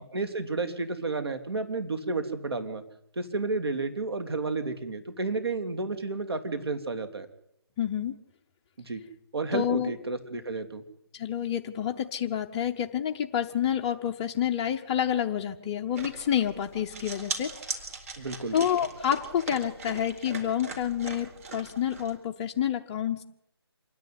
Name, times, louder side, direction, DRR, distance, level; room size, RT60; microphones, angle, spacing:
voice 1, 0.0-2.8 3.2-7.3 8.8-9.0 9.3-10.8 18.2-18.6, right 3 dB, 65° right, 7 dB, 3.4 m, -31 dB
voice 2, 7.8-8.1 9.5-9.9 11.1-17.5 18.5-23.2, left 9 dB, 15° left, 3 dB, 0.7 m, -28 dB
sound 1, 16.0-22.1, right 4 dB, 35° right, 4.0 m, -40 dB
27.0 x 10.5 x 9.7 m, 0.78 s
figure-of-eight pair, 160°, 14 cm